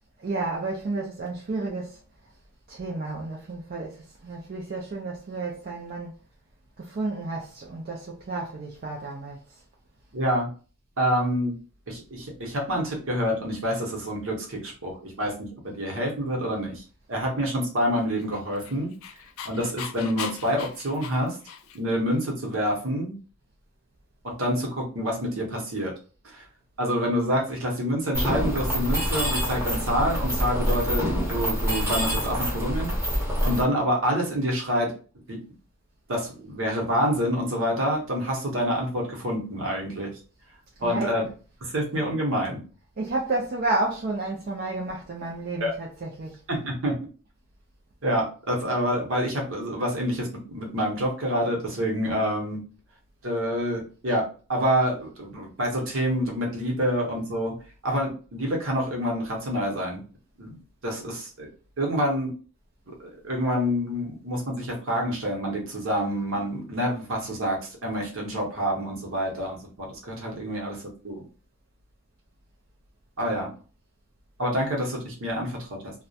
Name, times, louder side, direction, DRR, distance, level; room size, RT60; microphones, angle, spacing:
voice 1, 0.2-2.0 2.7-6.1 6.8-9.4 40.8-41.2 43.0-46.4, right 2 dB, 45° right, 0.4 m, -31 dB
voice 2, 10.1-10.5 11.0-11.5 11.9-16.8 17.1-18.9 19.4-21.4 21.7-23.1 24.2-25.9 26.2-26.4 26.8-32.9 33.4-34.9 35.3-35.4 36.1-40.1 40.8-41.2 41.6-42.6 45.6-45.7 46.5-46.9 48.0-52.6 53.2-57.5 57.8-60.0 60.4-60.6 60.8-61.5 61.8-62.3 62.9-63.0 63.2-70.8 71.0-71.2 73.2-73.5 74.4-75.9, equal, 65° right, 0.8 m, -27 dB
Dog, 18.1-22.0, left 8 dB, 70° left, 0.3 m, -39 dB
Mechanisms, 28.1-33.6, equal, 10° right, 0.7 m, -26 dB
2.3 x 2.1 x 2.6 m
head